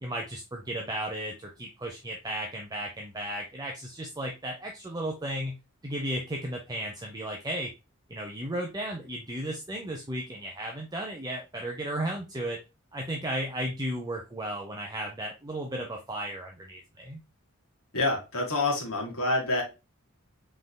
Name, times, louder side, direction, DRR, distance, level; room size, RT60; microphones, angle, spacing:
voice 1, 0.0-7.7 8.1-12.6 12.9-17.2, right 1 dB, 20° right, 1 dB, 0.7 m, -34 dB
voice 2, 17.9-19.6, left 2 dB, 80° left, 0 dB, 1.9 m, -27 dB
5.7 x 3.8 x 2.2 m, 0.26 s
head